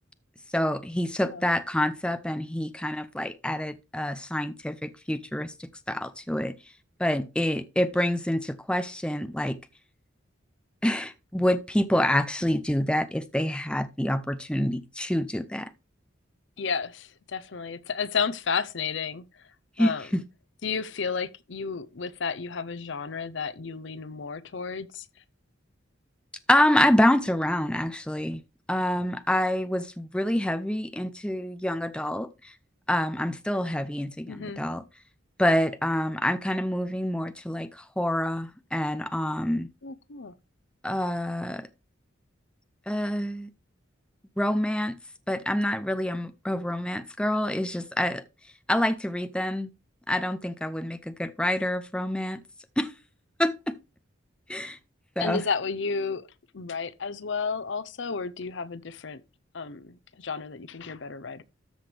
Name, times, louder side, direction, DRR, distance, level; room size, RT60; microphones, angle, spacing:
voice 1, 0.5-6.5 7.0-9.6 10.8-15.7 19.8-20.2 26.5-28.4 28.7-32.5 32.9-34.8 35.4-39.7 40.8-41.7 42.9-43.5 44.4-45.0 45.3-48.2 48.7-49.7 50.1-52.4 52.8-52.9 53.4-53.7 54.5-54.8 55.2-55.4, left 1 dB, 5° left, 0.5 m, -27 dB
voice 2, 16.6-19.2 19.8-20.1 20.6-25.1 34.3-34.6 39.8-40.3 55.2-56.2 56.5-59.2 59.5-61.4, left 5 dB, 60° left, 0.7 m, -32 dB
13.5 x 6.0 x 3.4 m
head